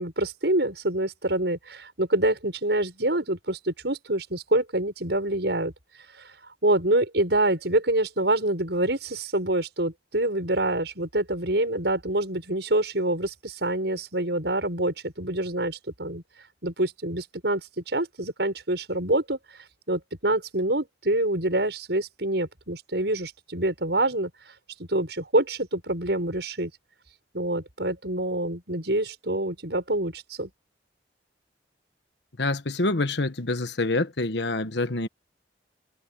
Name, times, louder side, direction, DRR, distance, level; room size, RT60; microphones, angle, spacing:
voice 1, 0.0-5.7 6.2-6.3 6.6-16.2 16.6-19.4 19.9-24.3 24.8-26.7 27.3-30.5, right 1 dB, 70° right, 6.4 m, -26 dB
voice 2, 32.4-35.1, left 2 dB, 75° left, 1.3 m, -26 dB
head